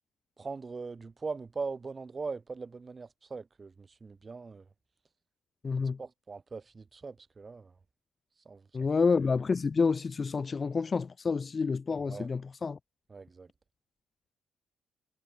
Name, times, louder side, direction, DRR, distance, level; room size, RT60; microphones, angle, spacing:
voice 1, 0.4-4.7 6.0-7.8 8.5-8.7 12.1-12.3 13.1-13.5, right 4 dB, 30° right, 7.1 m, -40 dB
voice 2, 5.6-6.0 8.7-12.8, left 5 dB, 35° left, 1.0 m, -29 dB
figure-of-eight pair, 45°, 0 cm